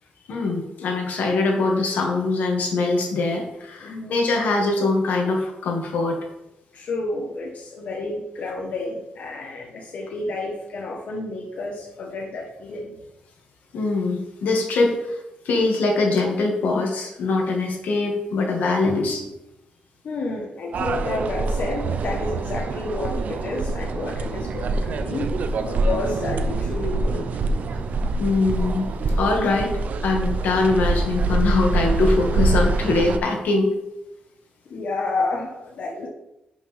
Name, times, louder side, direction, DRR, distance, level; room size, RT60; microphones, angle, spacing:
voice 1, 0.3-6.2 13.7-15.2 15.5-19.2 27.4-27.5 28.2-28.9 29.2-33.7, left 3 dB, 85° left, 1 dB, 2.1 m, -22 dB
voice 2, 3.8-4.2 6.7-13.0 20.0-25.3 25.6-27.4 34.7-36.1, left 2 dB, 60° left, -1 dB, 1.3 m, -30 dB
sound 1, 20.7-33.2, right 3 dB, 60° right, 0.7 m, -25 dB
11.0 x 6.3 x 3.6 m, 0.90 s
wide cardioid pair, 130°, 3 cm